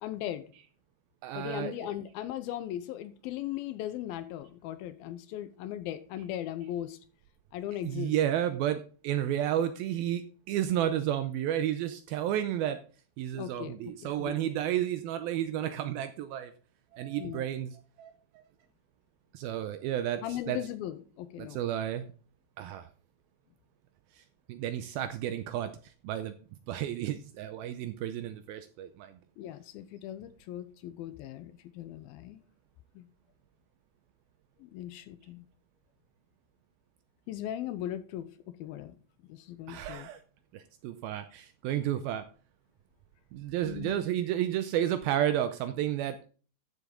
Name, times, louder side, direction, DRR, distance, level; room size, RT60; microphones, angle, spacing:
voice 1, 0.0-0.5 1.3-7.0 7.5-8.1 13.3-14.4 17.2-17.4 20.2-21.6 29.4-32.4 33.0-33.1 34.6-35.5 37.3-39.0 39.2-40.1 43.6-44.0, left 12 dB, 80° left, 2.3 m, -38 dB
voice 2, 1.2-1.9 7.7-12.8 13.2-16.5 16.9-18.1 19.3-20.6 21.4-22.1 22.6-22.9 24.2-24.3 24.5-25.7 26.0-26.3 26.7-29.2 39.7-40.2 40.5-42.2 43.3-46.2, right 11 dB, 80° right, 2.2 m, -32 dB
13.0 x 7.1 x 3.8 m
omnidirectional pair, 4.8 m